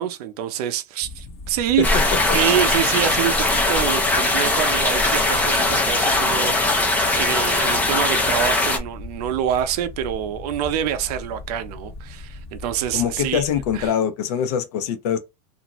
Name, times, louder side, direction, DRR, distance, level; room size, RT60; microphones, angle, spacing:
voice 1, 0.0-1.9 2.3-13.4 13.7-13.9, right 10 dB, 70° right, 0.6 m, -26 dB
sound 1, 1.0-13.9, left 3 dB, 30° left, 0.8 m, -39 dB
sound 2, 1.8-8.8, left 2 dB, 10° left, 0.3 m, -20 dB
voice 2, 12.9-15.2, left 8 dB, 70° left, 0.7 m, -23 dB
2.6 x 2.5 x 2.9 m
supercardioid pair, 160°, 20 cm